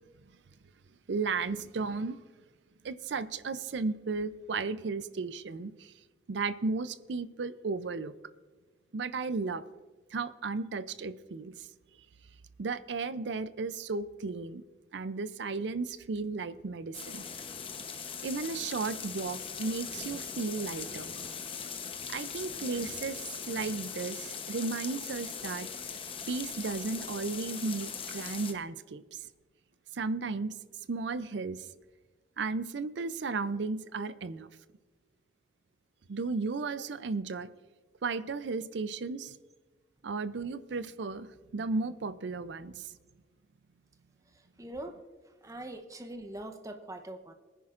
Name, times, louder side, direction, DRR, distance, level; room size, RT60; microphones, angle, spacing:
voice 1, 1.1-2.2 2.8-5.9 6.3-8.1 8.9-9.6 10.1-11.7 12.6-14.6 14.9-17.2 18.2-21.1 22.1-25.7 26.3-29.2 29.9-30.5 30.9-31.6 32.4-34.5 36.1-37.5 38.0-39.4 40.0-42.9, right 4 dB, 70° right, 15 dB, 0.5 m, -34 dB
sound 1, 16.9-28.5, left 6 dB, 30° left, 0.9 m, -40 dB
voice 2, 44.6-45.0 45.4-47.3, right 1 dB, 20° right, 6 dB, 0.8 m, -42 dB
21.5 x 10.0 x 2.5 m, 1.3 s
head